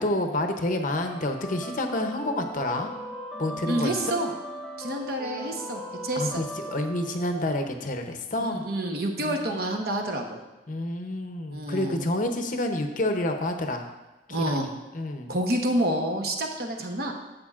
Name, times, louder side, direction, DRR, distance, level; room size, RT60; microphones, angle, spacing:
voice 1, 0.0-2.9 3.4-4.0 6.1-8.6 9.2-9.6 10.7-13.9 14.3-15.3, left 1 dB, 45° left, 5 dB, 0.7 m, -29 dB
sound 1, 0.7-7.7, right 1 dB, ahead, 1.1 m, -39 dB
voice 2, 3.7-4.3 4.8-6.4 8.4-10.4 11.5-12.0 14.3-14.7 15.3-17.1, right 1 dB, 55° right, 2 dB, 1.0 m, -28 dB
11.5 x 7.9 x 2.5 m, 1.2 s
head